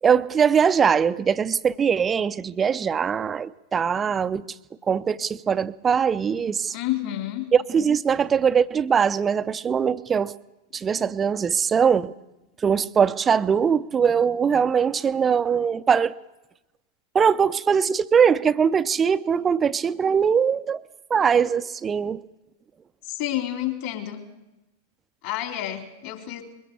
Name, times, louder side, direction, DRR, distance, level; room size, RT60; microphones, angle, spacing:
voice 1, 0.0-4.4 4.9-6.7 7.5-10.3 10.7-12.1 12.6-16.2 17.1-20.8 21.1-22.2, right 7 dB, 20° right, 0.6 m, -21 dB
voice 2, 6.7-7.5 23.0-24.2 25.2-26.4, left 13 dB, 50° left, 3.6 m, -29 dB
22.0 x 17.5 x 7.1 m
figure-of-eight pair, 90°, 0 cm